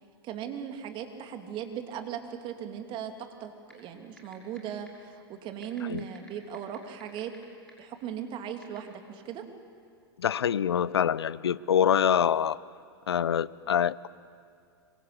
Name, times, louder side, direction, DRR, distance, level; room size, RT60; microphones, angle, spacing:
voice 1, 0.2-7.3 7.8-9.5, right 9 dB, 35° right, 5 dB, 2.7 m, -38 dB
sound 1, 3.7-3.8 4.2-4.6 4.9-5.0 5.6-7.4 7.7-7.8 8.6-8.8, left 1 dB, 5° left, 6.6 m, -50 dB
voice 2, 10.2-12.6 13.1-14.1, left 8 dB, 75° left, 20 dB, 0.7 m, -25 dB
25.5 x 24.5 x 8.5 m, 2.2 s
figure-of-eight pair, 95°, 14 cm